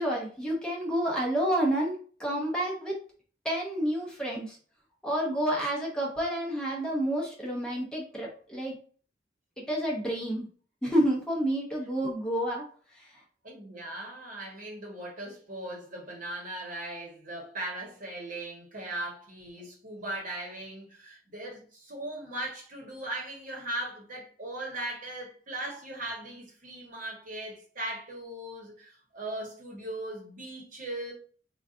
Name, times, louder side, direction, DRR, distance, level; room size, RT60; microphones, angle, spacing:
voice 1, 0.0-3.0 3.4-4.6 5.0-8.8 9.6-10.5 10.8-12.7 12.9-13.1, equal, 5° left, 0.7 m, -29 dB
voice 2, 13.4-31.1, right 1 dB, 45° right, 1.0 m, -38 dB
3.8 x 2.3 x 2.5 m
head